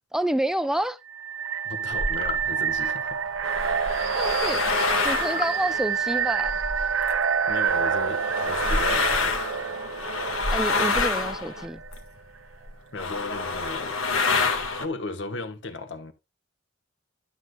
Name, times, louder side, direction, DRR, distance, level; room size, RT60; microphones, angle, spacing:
voice 1, 0.1-1.0 4.2-4.6 5.0-6.5 10.5-11.8, right 1 dB, ahead, 0.4 m, -28 dB
sound 1, 1.1-11.9, right 6 dB, 70° right, 0.5 m, -28 dB
voice 2, 1.6-3.2 7.5-9.4 12.9-16.1, left 3 dB, 60° left, 1.2 m, -36 dB
sound 2, 1.9-2.4 3.3-7.2 7.6-12.2 12.7-12.8 12.9-14.8, left 3 dB, 85° left, 1.6 m, -27 dB
sound 3, 2.1-2.5 5.2-5.6, left 6 dB, 25° left, 0.8 m, -33 dB
11.5 x 7.9 x 2.3 m
head